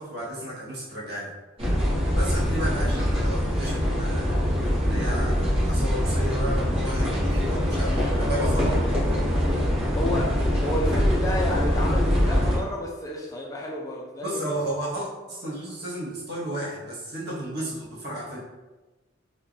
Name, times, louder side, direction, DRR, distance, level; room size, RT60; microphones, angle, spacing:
voice 1, 0.0-1.3 2.1-4.4 4.8-9.1 14.2-18.4, right 1 dB, 55° right, -6 dB, 1.2 m, -33 dB
sound 1, 1.6-12.6, equal, 30° right, 1.0 m, -23 dB
voice 2, 7.7-8.7 9.9-10.4 10.6-14.5, left 1 dB, 15° left, -2 dB, 0.4 m, -32 dB
3.2 x 2.2 x 3.9 m, 1.2 s
head